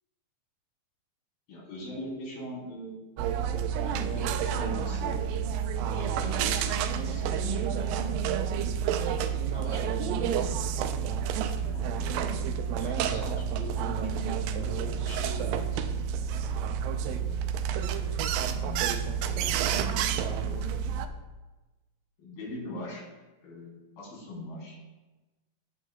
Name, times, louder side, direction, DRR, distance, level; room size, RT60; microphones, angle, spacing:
voice 1, 1.5-3.0 3.9-5.2 5.9-8.1 8.7-9.2 9.5-10.6 11.5-12.3 12.7-16.0 16.9-17.6 18.5-21.0 22.2-23.1 23.4-24.8, left 1 dB, 85° left, -5 dB, 5.3 m, -41 dB
sound 1, 3.2-21.1, right 8 dB, 85° right, 2.3 m, -29 dB
14.5 x 9.2 x 2.3 m, 1.2 s
omnidirectional pair, 4.1 m